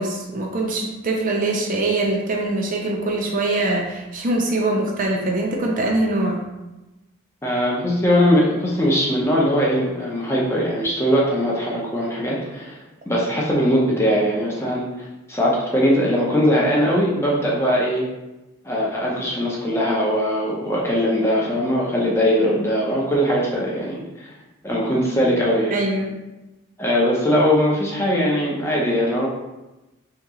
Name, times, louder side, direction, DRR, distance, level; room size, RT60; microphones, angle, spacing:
voice 1, 0.0-6.4 25.7-26.1, right 2 dB, 40° right, 0 dB, 0.4 m, -23 dB
voice 2, 7.4-12.8 13.1-14.9 15.3-18.0 18.6-24.3 24.6-25.7 26.8-29.3, equal, 10° left, -4 dB, 0.6 m, -20 dB
2.9 x 2.8 x 3.6 m, 1.0 s
head